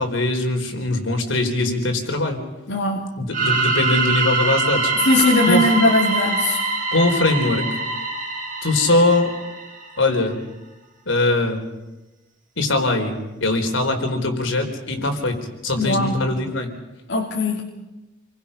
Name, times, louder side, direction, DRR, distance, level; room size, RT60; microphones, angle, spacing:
voice 1, 0.0-2.4 3.2-5.1 5.5-5.6 6.9-7.6 8.6-9.3 10.0-10.4 11.1-11.6 12.6-15.4 15.6-16.7, left 2 dB, 80° left, 4 dB, 4.3 m, -21 dB
voice 2, 2.7-3.1 5.0-6.6 15.8-16.3 17.1-17.7, left 2 dB, 65° left, -2 dB, 2.9 m, -20 dB
sound 1, 3.3-10.0, right 3 dB, 45° right, 6.9 m, -24 dB
29.0 x 23.0 x 5.8 m, 1.0 s
head